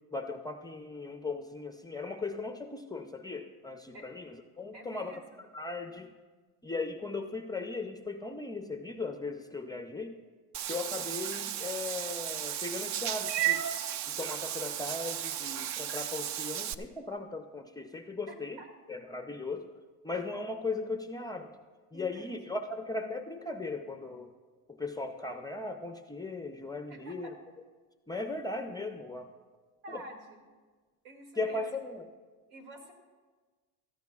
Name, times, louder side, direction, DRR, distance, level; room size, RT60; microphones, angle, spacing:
voice 1, 0.1-5.2 5.5-6.1 6.6-10.2 10.7-13.6 14.1-18.6 18.9-19.6 20.0-21.5 21.9-24.3 24.8-27.3 28.1-29.3 29.9-30.0 31.4-32.0, left 3 dB, 10° left, 6 dB, 0.4 m, -37 dB
voice 2, 4.7-5.4 18.3-18.7 21.9-22.4 26.9-27.3 29.8-30.4 31.0-31.7 32.5-32.9, right 1 dB, 85° right, 3 dB, 2.3 m, -48 dB
Meow / Water / Bathtub (filling or washing), 10.5-16.7, right 11 dB, 45° right, 0.5 m, -34 dB
17.5 x 13.5 x 2.3 m, 1.4 s
cardioid pair, 125°, 40 cm